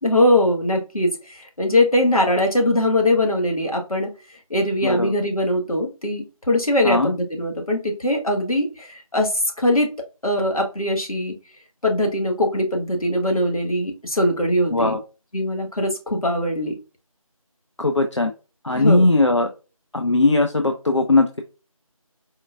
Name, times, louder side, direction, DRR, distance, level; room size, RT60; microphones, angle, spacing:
voice 1, 0.0-4.1 4.5-9.9 10.2-11.3 11.8-15.0 15.3-16.8 18.8-19.0, left 1 dB, 75° left, 1 dB, 1.4 m, -21 dB
voice 2, 4.8-5.1 6.8-7.1 14.7-15.0 17.8-18.3 18.6-19.5 19.9-21.4, left 2 dB, 55° left, 5 dB, 0.4 m, -19 dB
4.3 x 3.3 x 2.4 m, 0.32 s
figure-of-eight pair, 175°, 19 cm